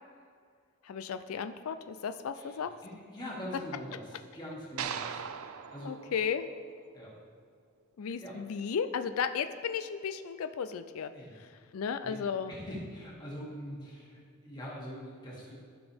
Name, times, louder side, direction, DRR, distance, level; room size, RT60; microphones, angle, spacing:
voice 1, 0.8-2.7 5.8-6.5 8.0-12.5, left 6 dB, 85° left, 10 dB, 0.4 m, -34 dB
voice 2, 2.3-5.2 5.5-6.0 6.9-7.2 8.2-8.4 11.1-11.3 12.0-12.2 12.5-15.5, equal, 20° left, -6 dB, 2.1 m, -43 dB
sound 1, 4.8-7.1, right 7 dB, 80° right, 0.5 m, -40 dB
14.5 x 6.1 x 3.5 m, 2.2 s
head